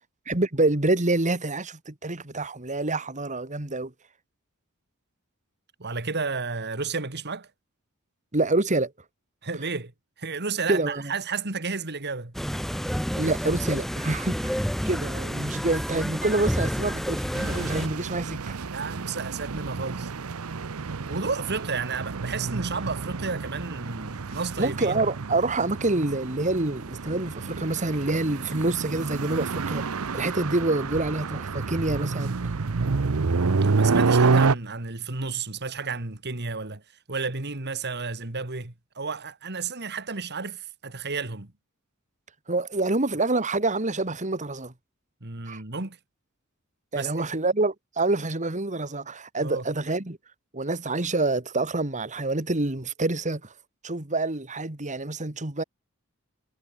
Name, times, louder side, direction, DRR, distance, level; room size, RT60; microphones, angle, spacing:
voice 1, 0.3-3.9 8.3-8.9 10.7-11.0 13.2-18.6 24.6-32.4 42.5-44.7 45.5-45.6 46.9-50.2 50.5-53.4 53.8-55.6, right 2 dB, 35° right, 2.2 m, -27 dB
voice 2, 5.8-7.5 9.4-9.9 10.2-12.3 18.7-20.1 21.1-25.0 33.6-36.8 37.1-41.5 45.2-46.0 46.9-47.1 49.4-49.7, right 4 dB, 50° right, 2.3 m, -32 dB
sound 1, 12.3-17.9, equal, ahead, 1.8 m, -29 dB
sound 2, 17.3-34.5, right 4 dB, 80° right, 0.8 m, -28 dB
head